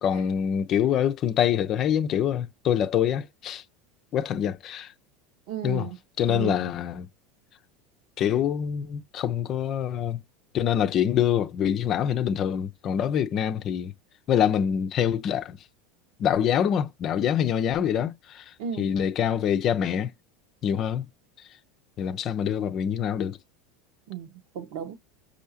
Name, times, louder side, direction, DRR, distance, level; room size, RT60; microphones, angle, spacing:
voice 1, 0.0-3.6 4.1-4.9 5.6-5.9 6.2-7.1 8.2-10.2 10.5-13.9 14.3-15.6 16.2-20.1 20.6-21.1 22.0-23.4, left 9 dB, 45° left, 0.6 m, -25 dB
voice 2, 5.5-6.0 6.3-6.7 18.6-18.9 24.1-24.9, right 9 dB, 65° right, 1.2 m, -34 dB
5.5 x 2.7 x 2.7 m
hypercardioid pair, 85°, 0 cm